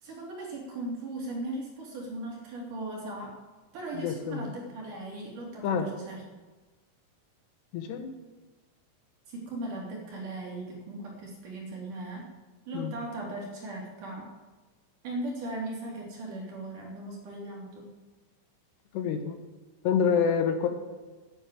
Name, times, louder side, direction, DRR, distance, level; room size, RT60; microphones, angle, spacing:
voice 1, 0.0-3.4 3.7-6.2 9.3-12.3 12.7-14.3 15.0-17.9, right 2 dB, 50° right, -1 dB, 3.5 m, -38 dB
voice 2, 3.9-4.5 5.6-5.9 7.7-8.1 12.7-12.9 18.9-19.4 19.8-20.7, left 6 dB, 70° left, 7 dB, 3.0 m, -27 dB
9.7 x 9.2 x 9.0 m, 1.3 s
omnidirectional pair, 5.6 m